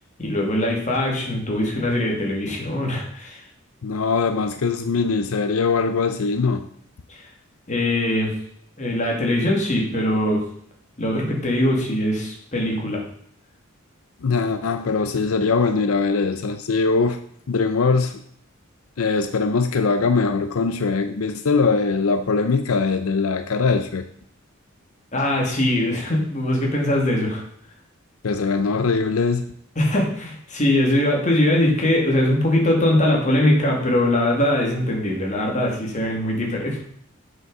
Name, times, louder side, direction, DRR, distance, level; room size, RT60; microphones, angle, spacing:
voice 1, 0.2-3.4 7.1-7.2 7.7-8.3 8.8-10.4 11.0-13.0 25.1-27.4 29.8-36.8, left 1 dB, 35° left, -1 dB, 2.4 m, -21 dB
voice 2, 3.8-6.7 14.2-17.2 17.5-18.2 19.0-24.0 28.2-29.5, left 4 dB, 90° left, 9 dB, 0.6 m, -21 dB
7.8 x 6.1 x 5.4 m, 0.65 s
head